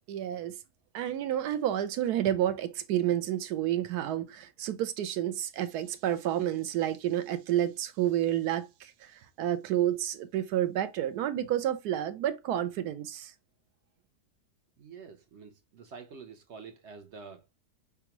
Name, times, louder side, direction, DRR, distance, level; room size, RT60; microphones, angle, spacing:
voice 1, 0.1-0.6 0.9-13.3, right 11 dB, 75° right, 1.1 m, -30 dB
voice 2, 14.8-17.5, right 5 dB, 60° right, 0.7 m, -47 dB
4.7 x 3.6 x 2.9 m
omnidirectional pair, 1.7 m